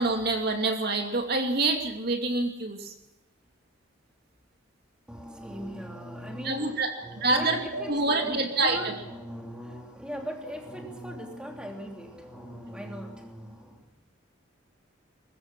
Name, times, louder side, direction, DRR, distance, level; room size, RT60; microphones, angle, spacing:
voice 1, 0.0-2.9 6.4-8.9, right 2 dB, 50° right, 4 dB, 2.7 m, -27 dB
voice 2, 5.1-13.9, equal, 5° right, 2 dB, 3.1 m, -39 dB
23.0 x 21.5 x 6.2 m, 0.93 s
head